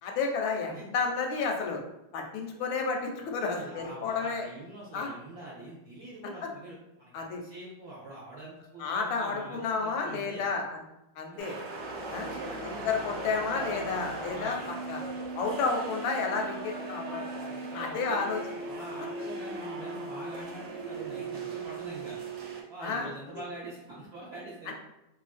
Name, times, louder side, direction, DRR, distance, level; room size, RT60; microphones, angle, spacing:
voice 1, 0.0-1.8 2.1-4.5 4.9-5.1 7.1-7.4 8.8-10.8 11.2-11.5 12.1-12.3 12.8-14.6 14.9-15.0 15.4-18.4 22.8-23.4, left 4 dB, 85° left, 2 dB, 1.3 m, -31 dB
voice 2, 3.4-10.5 11.3-11.6 12.1-13.0 14.3-14.6 17.4-18.2 18.6-22.2 22.7-24.7, right 2 dB, 65° right, -7 dB, 1.1 m, -45 dB
sound 1, 11.4-22.6, right 2 dB, 85° right, 0.6 m, -38 dB
3.1 x 2.5 x 2.4 m, 0.91 s
omnidirectional pair, 2.0 m